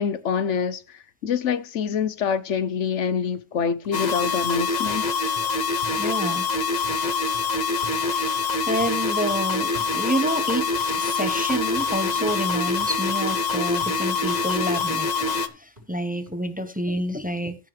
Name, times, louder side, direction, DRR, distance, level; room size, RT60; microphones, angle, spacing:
voice 1, 0.0-5.3, left 7 dB, 85° left, 1.2 m, -26 dB
Guitar Slap, 3.3-6.5 6.8-8.5 8.8-10.4 10.7-16.4 16.7-16.8, equal, 45° right, 5.4 m, -47 dB
sound 1, 3.9-15.5, left 4 dB, 40° left, 0.9 m, -25 dB
voice 2, 6.0-6.5 8.1-8.3 8.7-10.7 11.0-15.3 15.5-17.6, equal, 10° right, 1.0 m, -28 dB
15.0 x 6.8 x 3.3 m
omnidirectional pair, 1.2 m